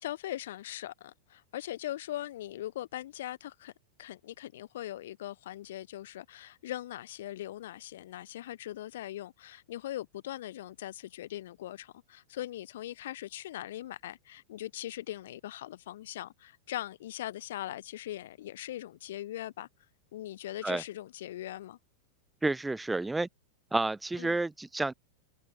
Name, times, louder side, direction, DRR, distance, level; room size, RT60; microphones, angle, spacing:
voice 1, 0.0-3.7 4.0-19.7 20.1-21.8 24.2-24.4, left 13 dB, 55° left, 2.3 m, -40 dB
voice 2, 22.4-23.3 23.7-24.9, right 2 dB, 5° right, 1.0 m, -30 dB
figure-of-eight pair, 90°, 0 cm